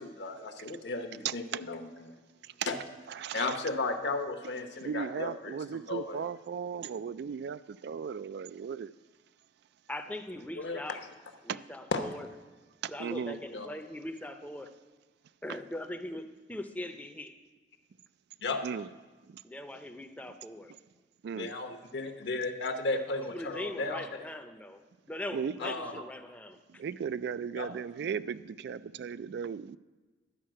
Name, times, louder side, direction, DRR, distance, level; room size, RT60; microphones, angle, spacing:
voice 1, 0.0-2.1 2.7-2.8 3.3-6.2 10.6-11.0 11.9-12.0 13.5-13.7 18.4-18.6 21.4-24.0 25.6-26.0 27.5-27.7, left 3 dB, 65° left, 7 dB, 1.0 m, -34 dB
voice 2, 1.2-1.6 2.6-2.7 3.1-3.6 4.8-8.9 11.5-11.6 12.8-13.4 18.6-18.9 21.2-21.5 25.3-25.7 26.8-29.8, right 7 dB, 60° right, 16 dB, 0.3 m, -36 dB
voice 3, 9.9-11.0 11.4-12.3 12.9-14.7 15.4-17.3 19.4-20.7 23.3-26.6, left 1 dB, 10° left, 6 dB, 0.6 m, -40 dB
11.5 x 5.5 x 7.5 m, 1.3 s
head